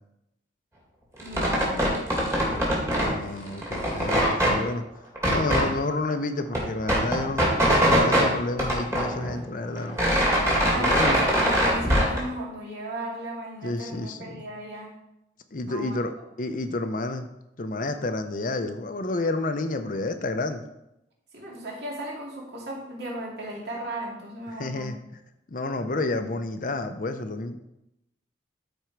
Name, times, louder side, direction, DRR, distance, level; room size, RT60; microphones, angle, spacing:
sound 1, 1.2-3.2 3.5-4.6 5.2-5.7 6.1-6.2 6.4-8.3 8.6-9.5 9.8-12.2, equal, 15° right, 2.2 m, -22 dB
voice 1, 1.2-2.0 10.7-14.9 15.7-16.0 21.3-24.9, right 1 dB, 55° right, -2 dB, 2.5 m, -36 dB
voice 2, 3.1-4.9 5.3-7.4 7.8-10.0 10.7-11.2 13.6-14.5 15.5-16.1 16.4-17.3 17.6-20.7 24.6-25.0 25.5-27.6, left 2 dB, 45° left, 8 dB, 0.6 m, -30 dB
13.0 x 4.5 x 4.6 m, 0.86 s
head